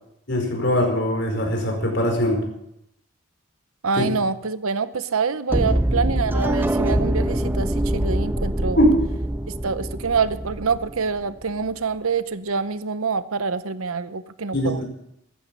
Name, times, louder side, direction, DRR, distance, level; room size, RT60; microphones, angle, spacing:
voice 1, 0.3-2.4 4.0-4.1 8.8-9.0 14.5-14.8, equal, 55° left, 2 dB, 5.0 m, -21 dB
voice 2, 3.8-8.8 9.6-14.8, right 5 dB, 90° right, 13 dB, 0.9 m, -26 dB
sound 1, 5.5-11.5, right 1 dB, 10° right, 0.5 m, -24 dB
15.5 x 14.5 x 5.5 m, 0.78 s
head